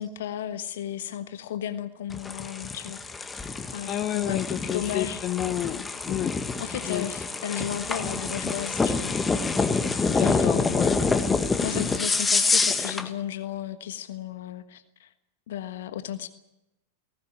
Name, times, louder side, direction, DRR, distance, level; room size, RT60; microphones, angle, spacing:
voice 1, 0.0-3.1 3.7-4.4 4.7-5.2 6.6-9.2 10.2-11.0 11.6-15.1 15.5-16.3, left 10 dB, 60° left, 10 dB, 1.4 m, -34 dB
sound 1, 2.1-13.1, left 4 dB, 15° left, 1.8 m, -27 dB
voice 2, 3.9-6.3 6.9-7.1 10.1-10.9, left 12 dB, 35° left, 9 dB, 1.1 m, -30 dB
19.5 x 18.0 x 8.8 m, 0.90 s
figure-of-eight pair, 90°, 0 cm